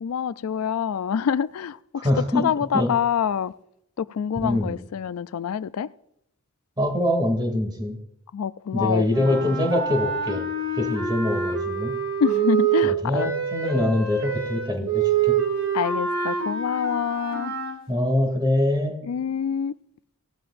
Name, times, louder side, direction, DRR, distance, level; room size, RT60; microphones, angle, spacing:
voice 1, 0.0-2.1 2.3-3.5 4.0-5.9 8.3-9.6 12.2-13.3 15.7-17.5 19.1-19.7, left 7 dB, 80° left, 0.4 m, -26 dB
voice 2, 2.0-2.5 2.7-2.9 4.4-4.8 6.8-8.0 8.7-10.4 10.8-12.0 12.8-15.3 17.9-18.9, left 1 dB, 20° right, 2.6 m, -24 dB
sound 1, 9.1-17.8, right 6 dB, 65° right, 2.4 m, -26 dB
17.0 x 12.5 x 2.6 m
head